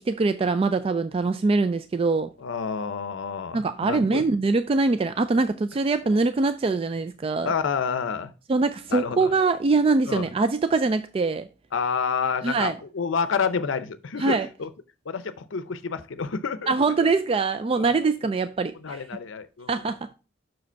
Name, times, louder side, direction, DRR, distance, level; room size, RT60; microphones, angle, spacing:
voice 1, 0.0-2.3 3.5-7.5 8.5-11.5 12.4-12.7 14.2-14.5 16.7-19.0 19.7-20.0, right 3 dB, 30° right, 0.3 m, -23 dB
voice 2, 2.4-4.2 7.4-8.3 8.9-9.3 10.1-10.3 11.7-14.7 15.1-17.1 17.8-17.9 18.8-19.8, left 5 dB, 75° left, 0.6 m, -29 dB
6.2 x 4.9 x 4.5 m
head